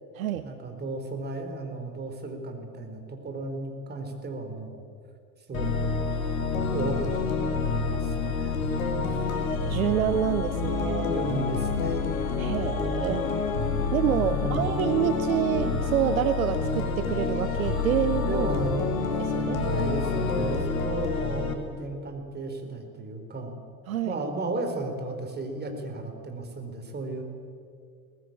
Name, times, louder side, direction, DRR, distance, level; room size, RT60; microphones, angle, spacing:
voice 1, 0.4-4.8 5.5-6.1 6.7-8.8 9.1-9.2 9.7-10.1 11.1-12.1 14.3-14.7 18.2-19.3 19.6-23.5 24.0-27.2, right 2 dB, 20° right, 5 dB, 4.0 m, -34 dB
sound 1, 5.5-21.5, left 4 dB, 65° left, 2.7 m, -28 dB
voice 2, 9.7-11.1 12.4-13.3 13.9-18.5 19.2-19.6 23.9-24.2, right 10 dB, 65° right, 11 dB, 1.0 m, -27 dB
22.0 x 18.5 x 8.8 m, 2.3 s
figure-of-eight pair, 75°, 45 cm